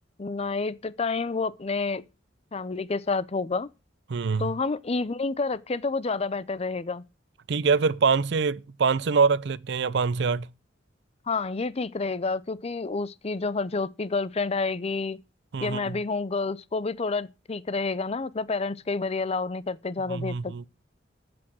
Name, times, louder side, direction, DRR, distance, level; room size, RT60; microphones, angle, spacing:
voice 1, 0.2-2.0 2.5-3.7 4.4-7.0 11.3-15.2 15.6-20.7, left 3 dB, 35° left, 0.5 m, -29 dB
voice 2, 4.1-4.5 7.5-10.5 15.5-16.0 20.1-20.7, right 5 dB, 65° right, 0.5 m, -24 dB
14.0 x 6.1 x 6.1 m
head